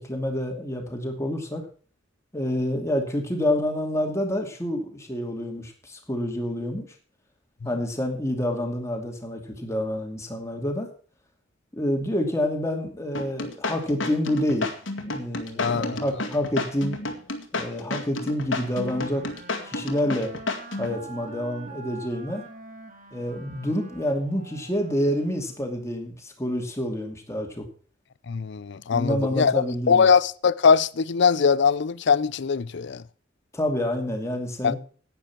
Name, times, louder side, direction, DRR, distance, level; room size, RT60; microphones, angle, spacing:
voice 1, 0.0-1.6 2.3-6.9 7.6-10.9 11.7-14.7 15.0-17.0 17.5-19.2 19.6-20.3 20.8-22.4 23.1-27.7 28.9-30.1 33.5-34.8, left 1 dB, 15° left, 2.5 m, -28 dB
sound 1, 13.1-21.0, left 2 dB, 80° left, 2.0 m, -31 dB
voice 2, 15.6-16.0 28.3-33.0 34.6-34.7, left 6 dB, 65° left, 0.5 m, -21 dB
sound 2, 18.4-25.8, right 4 dB, 45° right, 2.0 m, -45 dB
10.5 x 9.3 x 5.9 m
head